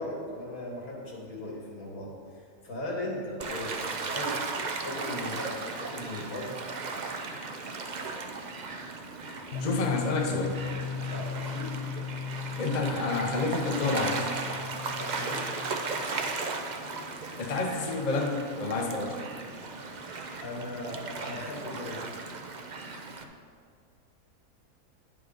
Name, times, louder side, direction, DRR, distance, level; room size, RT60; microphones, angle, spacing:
voice 1, 0.0-2.1 2.6-4.4 4.8-6.5 11.1-11.7 15.0-15.5 20.4-22.1, left 1 dB, 85° left, -3 dB, 2.5 m, -38 dB
Gull seagull / Waves surf, 3.4-23.2, right 3 dB, 50° right, 0.5 m, -36 dB
sound 1, 9.5-16.3, left 6 dB, 55° left, 1.2 m, -37 dB
voice 2, 9.6-10.6 12.6-14.3 17.4-19.3, left 3 dB, 35° left, 2 dB, 0.8 m, -29 dB
10.0 x 7.9 x 4.0 m, 2.2 s
omnidirectional pair, 1.5 m